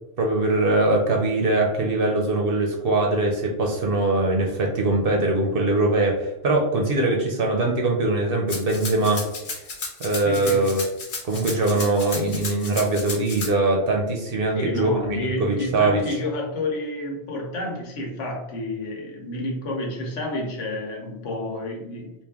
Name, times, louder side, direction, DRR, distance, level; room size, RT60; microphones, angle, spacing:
voice 1, 0.2-9.2 10.0-10.8 11.2-16.0, right 2 dB, 55° right, 1 dB, 0.7 m, -22 dB
Rattle (instrument), 8.5-13.5, left 3 dB, 50° left, 0.9 m, -33 dB
voice 2, 10.2-10.7 14.5-22.1, left 1 dB, 70° left, 0 dB, 1.2 m, -30 dB
3.5 x 2.5 x 3.5 m, 0.92 s
omnidirectional pair, 1.3 m